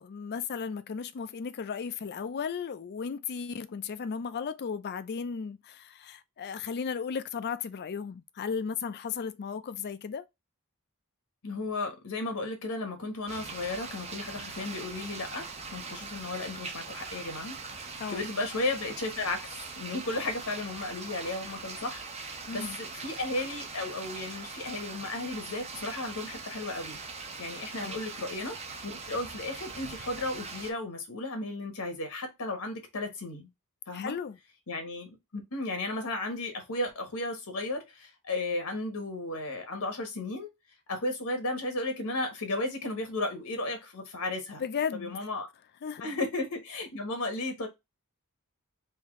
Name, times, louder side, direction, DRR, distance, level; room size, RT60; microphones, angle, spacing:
voice 1, 0.0-10.3 18.0-18.2 22.5-22.8 27.8-28.0 33.9-34.4 44.6-45.1 45.8-46.0, left 6 dB, 50° left, 0.4 m, -35 dB
voice 2, 11.4-33.5 33.9-34.1 34.7-40.5 40.9-44.6 44.9-45.5 46.0-47.7, left 2 dB, 75° left, 1.1 m, -34 dB
sound 1, 13.3-30.7, right 4 dB, 30° right, 0.7 m, -41 dB
3.5 x 2.7 x 3.6 m
head